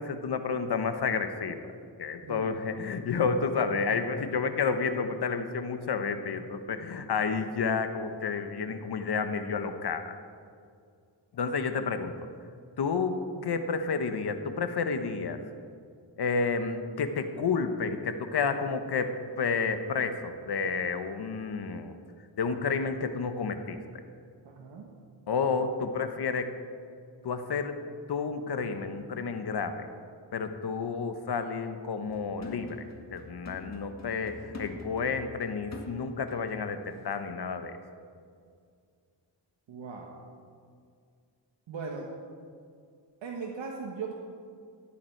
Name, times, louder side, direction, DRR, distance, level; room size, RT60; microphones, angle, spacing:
voice 1, 0.0-1.7 2.0-10.1 11.3-12.1 12.8-15.4 16.2-21.9 22.4-23.8 25.3-26.5 27.2-27.8 28.1-29.9 30.3-32.8 33.1-37.8, left 5 dB, 60° left, 8 dB, 1.2 m, -30 dB
voice 2, 2.2-2.6 24.4-24.9 39.7-40.1 41.7-42.1 43.2-44.1, right 5 dB, 80° right, 0 dB, 1.4 m, -39 dB
sound 1, 32.1-36.7 37.0-37.1, left 2 dB, 35° left, 1.8 m, -46 dB
14.5 x 10.5 x 4.6 m, 2.2 s
wide cardioid pair, 105°, 44 cm